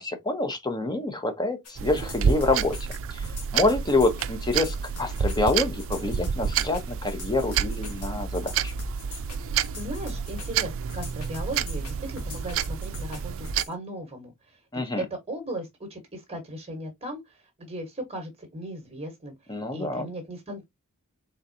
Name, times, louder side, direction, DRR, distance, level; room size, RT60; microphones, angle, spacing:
voice 1, 0.0-2.8 3.1-8.7 14.7-15.0 19.5-20.1, left 2 dB, 20° left, 0.9 m, -27 dB
sound 1, 1.6-13.7, left 1 dB, 75° left, 1.4 m, -40 dB
sound 2, 1.8-13.6, right 7 dB, 60° right, 0.4 m, -29 dB
voice 2, 9.7-14.6 15.0-20.6, right 1 dB, 25° right, 1.3 m, -37 dB
4.0 x 3.7 x 2.7 m
head